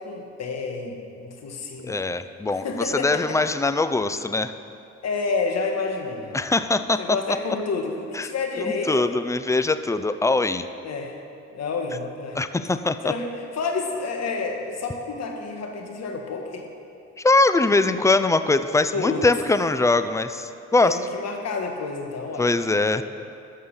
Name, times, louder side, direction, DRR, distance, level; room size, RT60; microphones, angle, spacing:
voice 1, 0.0-2.0 2.6-3.4 5.0-6.4 7.0-9.1 10.8-11.2 11.5-12.4 13.0-16.6 18.9-19.3 20.8-22.5, left 4 dB, 60° left, 3 dB, 1.5 m, -29 dB
voice 2, 1.8-4.5 6.3-7.4 8.1-8.3 8.6-10.7 12.3-13.1 17.2-21.0 22.4-23.0, left 3 dB, 10° left, 11 dB, 0.4 m, -22 dB
13.0 x 5.6 x 6.6 m, 2.5 s
cardioid pair, 90°, 30 cm